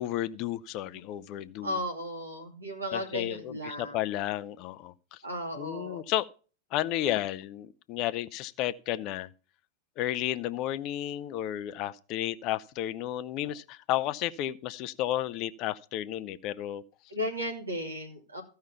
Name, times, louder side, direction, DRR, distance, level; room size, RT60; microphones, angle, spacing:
voice 1, 0.0-1.8 2.9-5.2 5.6-6.3 6.7-9.3 10.0-16.8, left 13 dB, 40° left, 0.6 m, -32 dB
voice 2, 1.6-4.0 5.2-6.0 17.1-18.4, equal, 80° right, 2.6 m, -35 dB
14.5 x 5.7 x 5.7 m
figure-of-eight pair, 90°, 0 cm